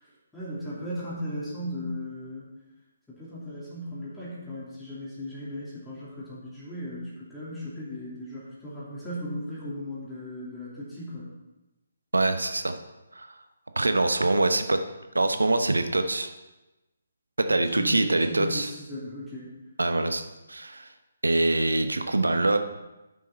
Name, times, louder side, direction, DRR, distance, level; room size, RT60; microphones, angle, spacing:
voice 1, 0.3-2.5 3.1-11.3 17.7-19.5, left 1 dB, 5° left, -10 dB, 2.9 m, -37 dB
voice 2, 12.1-12.7 13.1-13.3 13.8-14.8 15.1-16.3 17.4-18.7 19.8-20.2 20.5-20.9 21.2-22.6, right 2 dB, 75° right, 7 dB, 0.9 m, -24 dB
11.0 x 6.2 x 4.3 m, 1.0 s
figure-of-eight pair, 140°, 0 cm